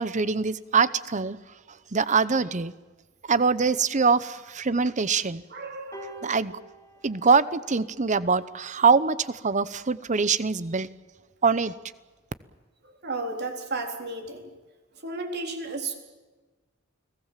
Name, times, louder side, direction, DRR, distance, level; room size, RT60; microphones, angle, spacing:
voice 1, 0.0-1.4 1.9-2.7 3.3-5.4 6.2-6.5 7.0-10.9 11.4-11.7, right 5 dB, 35° right, 0.8 m, -23 dB
voice 2, 5.5-6.3 13.0-14.5 14.9-16.0, right 3 dB, 55° right, 3.8 m, -33 dB
sound 1, 5.9-8.4 9.4-9.6, right 1 dB, 15° left, 3.6 m, -47 dB
29.5 x 19.0 x 7.5 m
head